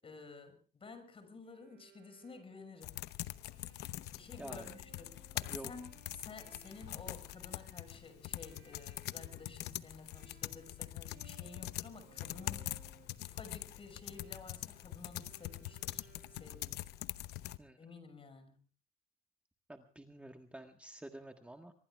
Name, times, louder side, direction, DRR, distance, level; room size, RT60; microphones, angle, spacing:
voice 1, 0.0-3.0 4.1-12.8 13.2-16.9 17.8-18.6, left 4 dB, 35° left, 9 dB, 6.1 m, -52 dB
Bowed string instrument, 1.5-10.8 11.1-16.9, right 8 dB, 70° right, 6.8 m, -65 dB
sound 1, 2.8-17.6, left 15 dB, 80° left, 0.8 m, -44 dB
voice 2, 4.4-4.7 5.5-5.7 17.6-17.8 19.7-21.7, right 1 dB, 5° right, 5 dB, 1.5 m, -49 dB
25.0 x 22.5 x 2.4 m, 0.40 s
cardioid pair, 110°, 17 cm